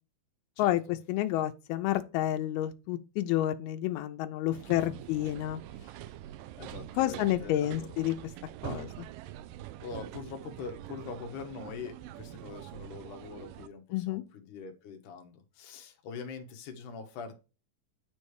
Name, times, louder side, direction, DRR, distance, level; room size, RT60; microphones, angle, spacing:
voice 1, 0.6-1.0 4.6-5.2 5.7-6.1 6.6-8.0 9.0-9.2 9.8-17.3, left 5 dB, 65° left, 2.3 m, -44 dB
voice 2, 1.1-5.6 7.0-8.2 8.6-9.1 13.9-14.2, left 14 dB, 85° left, 2.5 m, -30 dB
sound 1, 4.5-13.7, right 13 dB, 85° right, 1.9 m, -45 dB
9.4 x 3.2 x 4.7 m
omnidirectional pair, 4.3 m